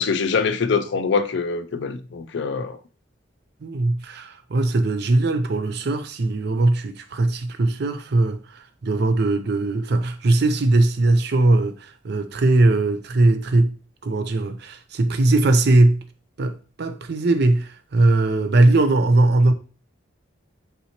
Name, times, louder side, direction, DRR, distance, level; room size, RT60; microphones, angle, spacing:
voice 1, 0.0-2.8, left 5 dB, 60° left, 0.4 m, -24 dB
voice 2, 3.6-13.7 14.0-16.0 16.4-19.5, right 2 dB, 55° right, 0.5 m, -20 dB
4.2 x 4.0 x 2.9 m
head